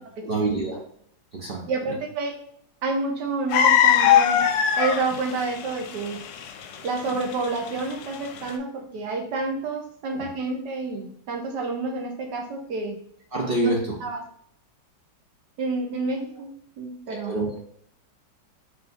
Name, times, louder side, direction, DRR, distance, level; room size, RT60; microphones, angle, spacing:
voice 1, 0.2-0.8 1.3-2.0 10.1-10.3 13.3-13.9 17.1-17.6, right 2 dB, 55° right, -2 dB, 0.6 m, -27 dB
voice 2, 1.7-2.4 2.8-4.5 4.8-6.2 6.8-13.0 13.6-13.7 14.0-14.2 15.6-17.4, right 3 dB, 70° right, 2 dB, 1.4 m, -29 dB
sound 1, 3.5-8.5, left 9 dB, 75° left, 1.2 m, -19 dB
4.2 x 2.6 x 4.0 m, 0.69 s
omnidirectional pair, 1.9 m